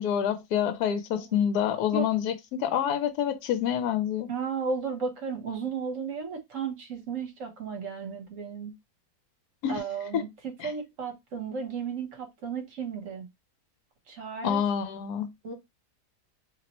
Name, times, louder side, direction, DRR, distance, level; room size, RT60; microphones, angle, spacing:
voice 1, 0.0-4.3 9.6-9.8 10.1-10.2 10.6-10.7 14.4-15.3, left 9 dB, 75° left, 1.1 m, -27 dB
voice 2, 4.3-8.7 9.7-13.3 14.1-14.6 15.4-15.5, right 5 dB, 55° right, 1.2 m, -34 dB
2.9 x 2.0 x 4.1 m
omnidirectional pair, 1.8 m